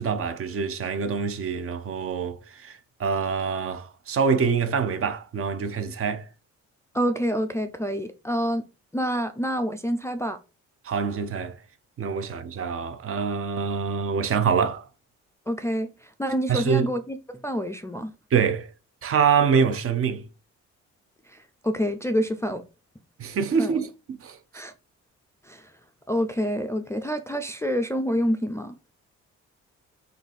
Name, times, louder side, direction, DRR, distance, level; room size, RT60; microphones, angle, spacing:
voice 1, 0.0-6.3 10.8-11.6 12.0-14.9 16.5-16.9 18.3-18.7 19.0-20.2 23.2-24.4, right 6 dB, 50° right, 0.6 m, -25 dB
voice 2, 6.9-8.6 8.9-10.4 15.5-15.9 16.2-17.2 17.4-18.1 21.3-21.4 21.6-22.6 23.6-23.8 24.5-24.7 25.5-25.7 26.1-28.8, equal, 10° left, 0.3 m, -27 dB
3.9 x 2.5 x 4.0 m
cardioid pair, 90°, 30 cm